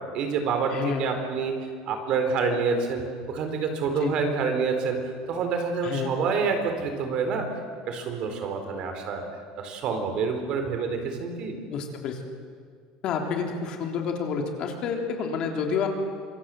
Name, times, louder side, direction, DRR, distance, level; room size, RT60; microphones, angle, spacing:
voice 1, 0.0-1.5 1.9-7.5 7.9-9.2 9.6-11.6, right 5 dB, 45° right, 6 dB, 4.2 m, -27 dB
voice 2, 0.7-1.0 4.0-4.2 5.8-6.1 11.6-12.2 13.0-15.9, left 6 dB, 40° left, 2 dB, 3.5 m, -29 dB
26.5 x 23.5 x 7.8 m, 2.1 s
cardioid pair, 165°, 2 cm